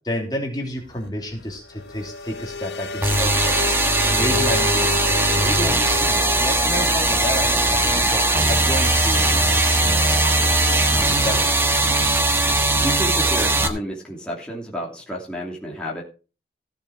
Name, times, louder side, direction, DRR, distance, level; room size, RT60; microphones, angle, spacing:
voice 1, 0.1-3.6 4.1-10.3 11.2-11.8, equal, 25° left, 0 dB, 3.0 m, -30 dB
sound 1, 0.7-13.2, left 4 dB, 80° left, 1.1 m, -32 dB
sound 2, 3.0-13.7, right 2 dB, 15° right, 1.3 m, -19 dB
voice 2, 12.8-16.0, equal, 5° left, -4 dB, 2.9 m, -30 dB
16.0 x 7.2 x 4.7 m, 0.34 s
head